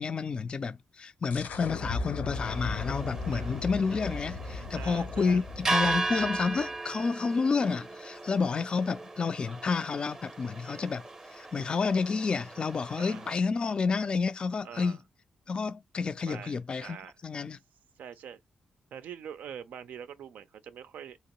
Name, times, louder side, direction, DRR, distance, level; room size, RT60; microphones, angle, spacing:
voice 1, 0.0-15.0 15.5-17.0 17.2-17.6, left 5 dB, 35° left, 0.3 m, -30 dB
sound 1, 1.3-6.8, left 3 dB, 75° left, 0.7 m, -37 dB
sound 2, 2.3-13.3, right 3 dB, 20° right, 0.6 m, -37 dB
voice 2, 3.1-3.6 4.7-5.4 13.0-13.3 14.6-15.0 16.3-17.1 18.0-18.4 18.9-21.2, right 8 dB, 85° right, 0.4 m, -44 dB
3.0 x 2.9 x 2.9 m
wide cardioid pair, 135°, 3 cm